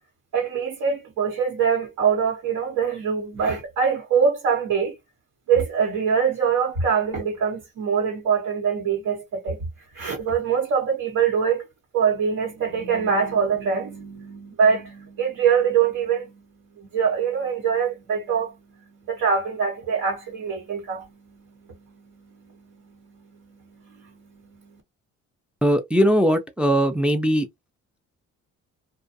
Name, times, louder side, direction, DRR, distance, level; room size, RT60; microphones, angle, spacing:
voice 1, 0.3-4.9 5.5-9.6 9.9-11.6 11.9-24.8, right 6 dB, 80° right, 1.2 m, -24 dB
voice 2, 25.6-27.5, equal, 5° right, 0.4 m, -20 dB
2.5 x 2.3 x 2.5 m
cardioid pair, 90°, 30 cm